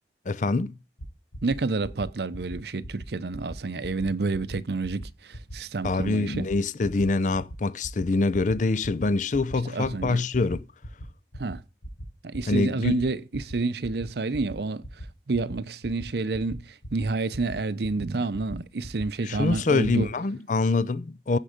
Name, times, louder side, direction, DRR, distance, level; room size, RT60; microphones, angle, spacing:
voice 1, 0.3-0.8 5.8-10.6 12.5-13.0 19.2-21.4, left 3 dB, 45° left, 0.5 m, -25 dB
sound 1, 1.0-1.1 1.3-1.6 1.8-2.1 2.3-2.6 2.8-3.1 3.3-3.6 3.8-4.1 4.3-4.6 4.8-5.1 5.3-5.6 5.8-6.1 6.3-6.6 6.8-7.1 7.3-7.6 7.8-8.1 8.3-8.6 8.8-9.1 9.3-9.6 9.8-10.1 10.3-10.6 10.8-11.1 11.3-11.6 11.8-12.0 12.3-12.5 12.8-13.1 13.3-13.6 13.8-14.1 14.3-14.6 14.8-15.1 15.3-15.5 15.8-16.0 16.3-16.6 16.8-17.1 17.3-17.6 17.8-18.1 18.3-18.6 18.8-19.1 19.3-19.6 19.8-20.0, right 1 dB, 80° left, 5.1 m, -39 dB
voice 2, 1.4-6.5 9.6-10.2 11.4-11.6 12.2-14.8 15.3-20.1, right 3 dB, 65° right, 0.6 m, -29 dB
15.0 x 5.5 x 5.1 m
head